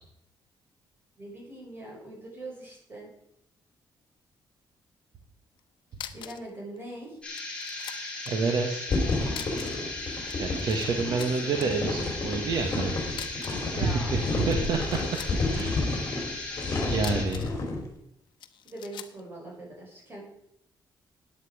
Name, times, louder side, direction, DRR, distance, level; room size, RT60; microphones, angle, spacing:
voice 1, 1.2-3.1 6.1-7.2 11.0-11.8 13.6-14.1 18.6-20.2, right 1 dB, 25° right, -3 dB, 6.3 m, -42 dB
sound 1, 5.6-5.7 5.9-6.5 6.8-6.9 7.3-8.3 9.3-9.9 10.1-10.9 11.2-11.7 13.1-13.7 14.3-15.6 16.9-17.6 18.4-19.2, left 10 dB, 75° left, 0.9 m, -42 dB
sound 2, 7.2-17.2, left 2 dB, 15° left, 4.1 m, -37 dB
voice 2, 8.2-8.8 10.4-13.0 13.8-15.0 15.5-15.8 16.8-17.5, right 4 dB, 65° right, 3 dB, 1.5 m, -28 dB
sound 3, 8.9-17.8, left 3 dB, 40° left, 3.7 m, -31 dB
14.0 x 9.6 x 5.0 m, 0.75 s
cardioid pair, 155°, 8 cm